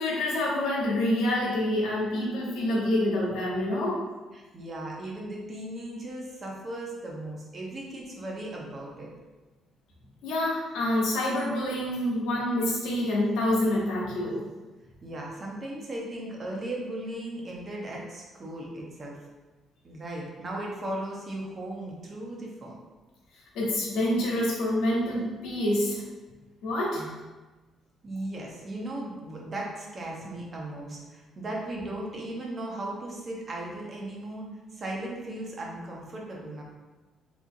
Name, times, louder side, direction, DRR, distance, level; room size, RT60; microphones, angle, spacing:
voice 1, 0.0-4.0 10.2-14.4 23.5-26.0 26.6-27.0, left 1 dB, 85° left, -4 dB, 1.0 m, -27 dB
voice 2, 4.3-9.1 15.0-19.2 19.8-22.8 26.9-27.1 28.0-36.6, right 1 dB, 40° right, -2 dB, 0.8 m, -37 dB
3.4 x 3.0 x 2.6 m, 1.2 s
cardioid pair, 90°, 0 cm